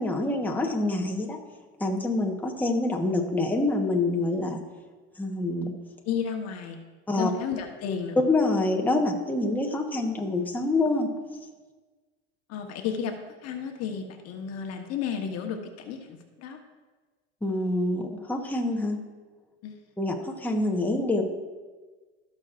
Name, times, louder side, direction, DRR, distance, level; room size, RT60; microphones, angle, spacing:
voice 1, 0.0-1.4 1.8-4.6 5.2-5.7 7.1-7.3 8.3-11.1 17.4-19.0 20.0-21.2, left 2 dB, 5° left, 1 dB, 1.1 m, -26 dB
voice 2, 6.0-6.8 7.1-8.2 12.5-13.1 13.4-16.6 19.6-19.8, left 7 dB, 50° left, 4 dB, 1.2 m, -32 dB
16.5 x 6.4 x 2.5 m, 1.3 s
supercardioid pair, 100°, 32 cm